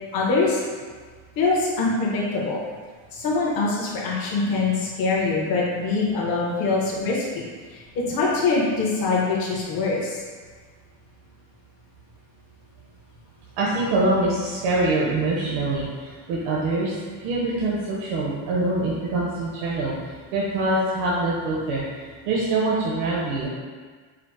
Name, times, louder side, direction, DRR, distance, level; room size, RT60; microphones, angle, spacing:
voice 1, 0.1-0.6 1.4-2.6 3.1-7.4 7.7-7.8 8.1-10.2, left 3 dB, 45° left, -5 dB, 0.9 m, -23 dB
voice 2, 13.6-16.9 17.2-19.9 20.3-23.5, right 2 dB, 75° right, -5 dB, 0.9 m, -24 dB
4.8 x 2.0 x 4.7 m, 1.5 s
cardioid pair, 180°, 50 cm